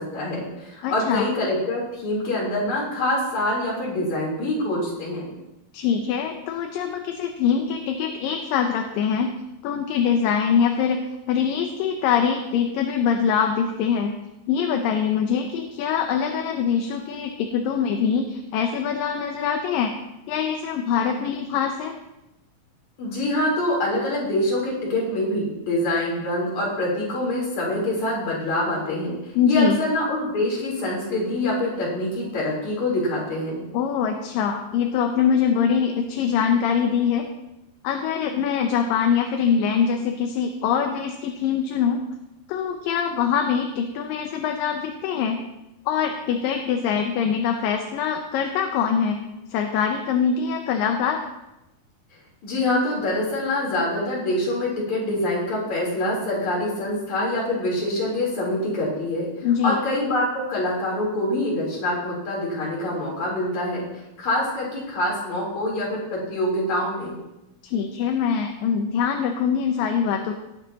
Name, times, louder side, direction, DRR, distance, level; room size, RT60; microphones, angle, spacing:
voice 1, 0.0-5.3 21.0-21.1 23.0-29.2 29.4-33.6 52.4-59.3 59.6-63.9 64.2-67.2, left 1 dB, 55° left, -4 dB, 4.9 m, -25 dB
voice 2, 0.8-1.3 5.7-9.3 9.6-11.0 11.3-14.1 14.5-20.0 20.3-22.0 29.4-29.8 33.7-37.3 37.8-42.0 42.5-45.4 45.9-49.2 49.5-51.2 59.4-59.8 67.6-70.3, left 7 dB, 80° left, 4 dB, 2.5 m, -23 dB
19.0 x 9.4 x 2.9 m, 0.94 s
omnidirectional pair, 4.0 m